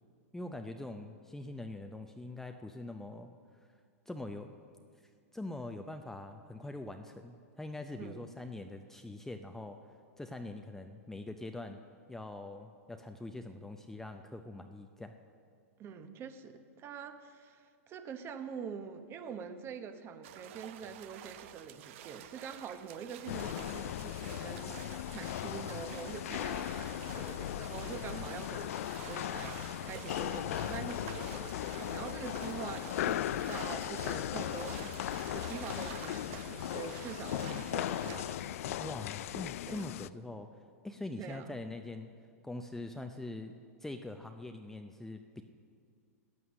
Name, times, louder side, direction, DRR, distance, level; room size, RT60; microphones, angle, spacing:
voice 1, 0.3-3.3 4.1-4.5 5.3-9.8 10.2-11.8 12.1-15.2 38.7-40.5 40.8-42.1 42.4-43.5 43.8-45.4, left 2 dB, 5° left, 5 dB, 0.5 m, -43 dB
voice 2, 7.9-8.3 15.8-35.0 35.3-38.8 39.7-39.8 41.2-41.6, right 7 dB, 30° right, 9 dB, 0.9 m, -45 dB
sound 1, 20.2-38.7, right 11 dB, 55° right, 0.7 m, -49 dB
sound 2, 23.3-40.1, left 13 dB, 60° left, 0.3 m, -38 dB
sound 3, 25.7-36.4, left 5 dB, 80° left, 1.3 m, -58 dB
14.0 x 9.4 x 6.4 m, 2.1 s
hypercardioid pair, 120°, 8 cm